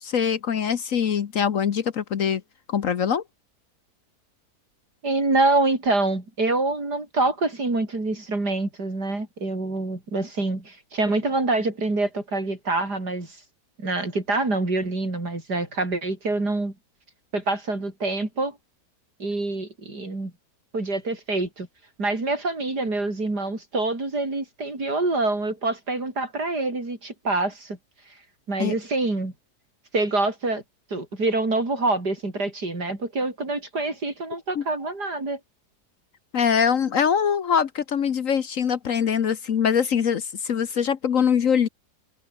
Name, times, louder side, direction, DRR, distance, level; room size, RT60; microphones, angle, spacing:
voice 1, 0.0-2.4 2.7-3.2 28.6-28.7 34.5-34.6 36.3-41.7, left 7 dB, 55° left, 1.3 m, -23 dB
voice 2, 5.0-13.4 13.8-16.7 17.3-18.6 19.2-20.3 20.7-21.7 22.0-27.8 28.5-29.3 29.9-30.6 30.9-35.4, right 2 dB, 70° right, 6.3 m, -26 dB
omnidirectional pair, 1.8 m